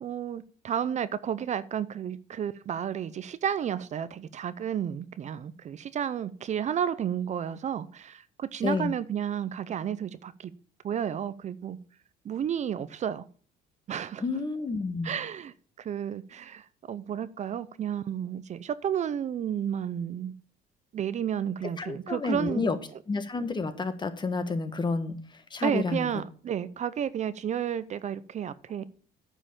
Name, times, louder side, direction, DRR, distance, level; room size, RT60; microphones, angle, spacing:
voice 1, 0.0-10.5 10.8-11.8 12.2-13.2 13.9-14.2 15.0-20.3 20.9-22.7 25.6-28.8, right 9 dB, 45° right, 0.6 m, -32 dB
voice 2, 14.2-15.1 21.8-22.8 23.1-26.1, left 3 dB, 25° left, 1.3 m, -30 dB
9.7 x 5.5 x 7.0 m
cardioid pair, 110°, 17 cm